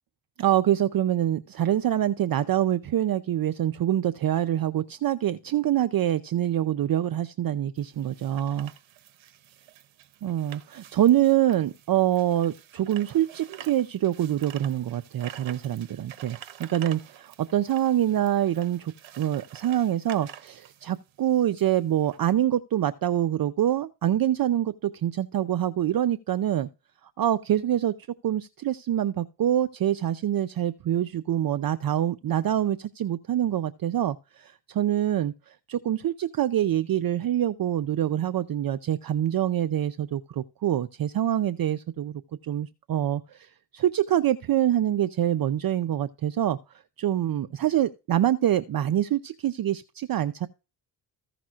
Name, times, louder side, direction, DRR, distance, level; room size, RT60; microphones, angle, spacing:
voice 1, 0.4-8.7 10.2-26.7 27.2-27.9 28.2-43.5 43.7-46.6 47.0-50.5, right 11 dB, 50° right, 0.6 m, -25 dB
sound 1, 7.8-22.2, right 11 dB, 75° right, 1.1 m, -48 dB
15.0 x 6.0 x 2.4 m
cardioid pair, 80°, 47 cm